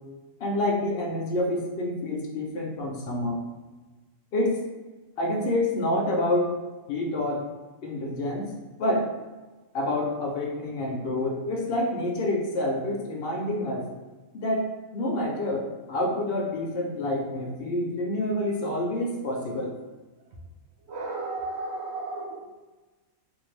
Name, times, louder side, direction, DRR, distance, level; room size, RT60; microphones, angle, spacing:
voice 1, 0.4-3.4 4.3-4.7 5.2-6.6 6.9-7.5 7.8-8.5 8.8-9.1 9.7-13.9 14.3-19.8, left 1 dB, 65° left, 0 dB, 0.6 m, -28 dB
voice 2, 20.8-22.5, right 2 dB, 65° right, -1 dB, 0.8 m, -34 dB
2.6 x 2.5 x 3.1 m, 1.2 s
omnidirectional pair, 1.4 m